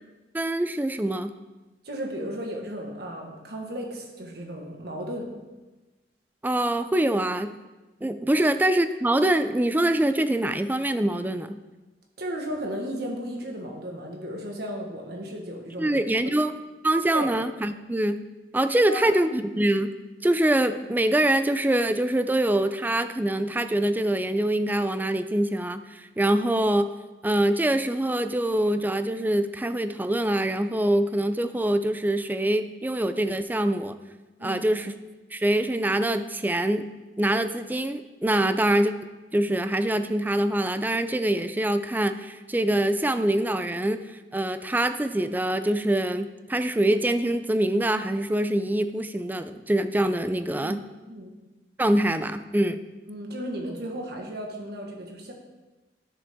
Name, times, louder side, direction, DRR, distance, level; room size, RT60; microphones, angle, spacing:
voice 1, 0.3-1.3 6.4-7.6 8.0-11.6 15.8-16.6 16.8-18.2 18.5-20.0 20.2-26.9 27.2-34.0 34.4-34.9 35.3-36.9 37.2-38.9 39.3-44.0 44.3-50.8 51.8-52.8, right 1 dB, 10° right, 10 dB, 0.4 m, -24 dB
voice 2, 1.8-5.3 8.3-8.4 12.2-16.0 17.1-17.3 18.9-19.1 34.4-34.7 38.4-38.5 50.6-50.8 51.1-51.3 53.1-55.3, equal, 65° right, 1 dB, 1.5 m, -34 dB
11.5 x 6.7 x 3.6 m, 1.1 s
head